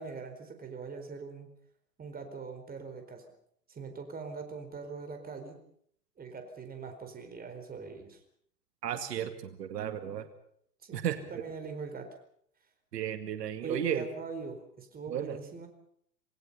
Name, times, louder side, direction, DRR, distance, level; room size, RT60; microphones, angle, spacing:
voice 1, 0.0-1.5 2.0-3.2 3.7-5.6 6.2-8.2 10.8-12.1 13.6-15.7, right 4 dB, 20° right, 7 dB, 4.4 m, -42 dB
voice 2, 8.8-10.3 10.9-11.2 12.9-14.0 15.1-15.4, right 10 dB, 75° right, 8 dB, 2.3 m, -34 dB
27.5 x 19.5 x 5.6 m, 0.65 s
hypercardioid pair, 115°, 49 cm